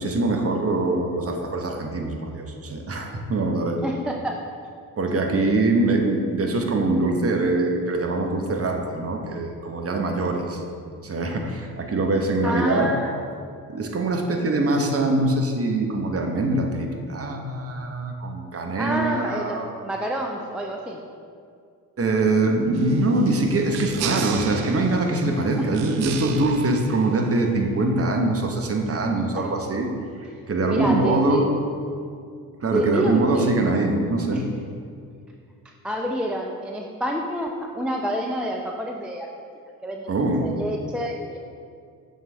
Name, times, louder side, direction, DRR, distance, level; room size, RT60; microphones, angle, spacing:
voice 1, 0.0-3.8 5.0-10.6 11.0-12.9 13.7-19.7 22.0-29.9 30.5-31.5 32.6-34.4 40.1-40.5, right 2 dB, 30° right, 2 dB, 1.0 m, -23 dB
voice 2, 3.8-4.4 12.4-13.2 18.8-21.0 24.0-24.1 25.6-25.7 29.3-29.5 30.7-31.4 32.7-33.5 34.3-34.4 35.6-39.3 39.8-40.1 40.4-41.4, equal, ahead, 1 dB, 0.4 m, -28 dB
sound 1, 22.7-27.8, right 8 dB, 55° right, 0.6 m, -35 dB
6.5 x 6.4 x 3.3 m, 2.3 s
figure-of-eight pair, 45°, 47 cm